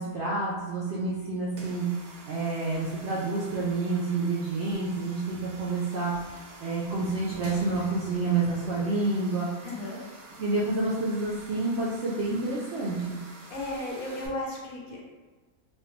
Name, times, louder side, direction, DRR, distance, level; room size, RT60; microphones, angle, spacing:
voice 1, 0.0-6.1 6.6-9.5 10.4-13.2, right 3 dB, 65° right, -6 dB, 0.7 m, -29 dB
sound 1, 1.5-14.3, right 2 dB, 85° right, 1.2 m, -47 dB
voice 2, 9.6-10.0 13.5-15.0, left 1 dB, 70° left, -2 dB, 1.0 m, -35 dB
3.2 x 2.3 x 2.9 m, 1.3 s
omnidirectional pair, 1.6 m